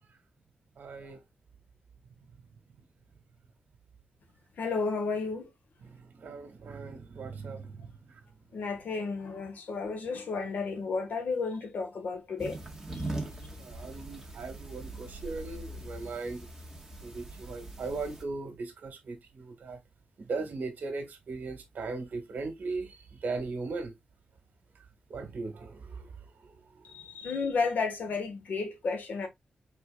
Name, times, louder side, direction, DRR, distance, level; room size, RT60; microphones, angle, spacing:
voice 1, 0.7-1.2 2.0-2.8 3.1-3.2 5.8-8.2 13.2-16.5 17.0-19.8 20.2-23.9 24.7-27.0, right 3 dB, 70° right, 1.7 m, -39 dB
voice 2, 4.6-5.5 8.5-12.6 12.9-13.0 26.9-29.3, left 4 dB, 65° left, 1.4 m, -32 dB
sound 1, 12.4-18.2, right 2 dB, 10° right, 1.7 m, -41 dB
4.7 x 4.4 x 2.3 m
wide cardioid pair, 110°, 3 cm